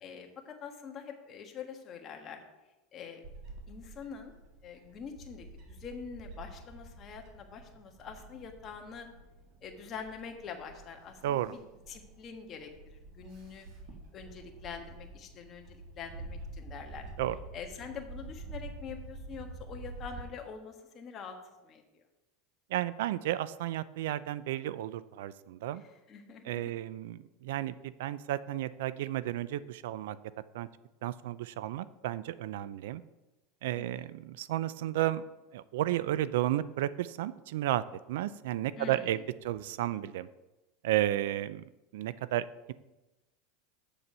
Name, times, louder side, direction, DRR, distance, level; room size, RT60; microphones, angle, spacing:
voice 1, 0.0-2.4 2.9-3.2 3.7-4.3 4.6-9.1 9.6-11.6 11.9-13.7 14.1-17.1 17.5-21.4 21.6-22.0 26.1-26.7 33.7-34.0 38.8-39.2, left 6 dB, 35° left, 4 dB, 1.4 m, -45 dB
Bird / Wind, 3.2-20.2, right 2 dB, 50° right, 1.8 m, -48 dB
voice 2, 11.2-11.6 17.2-17.4 22.7-25.8 26.4-30.2 30.5-30.7 31.0-33.0 33.6-35.2 35.5-40.3 40.8-41.6 41.9-42.7, right 13 dB, 80° right, 17 dB, 0.4 m, -33 dB
7.5 x 6.9 x 5.5 m, 1.0 s
supercardioid pair, 125°, 0 cm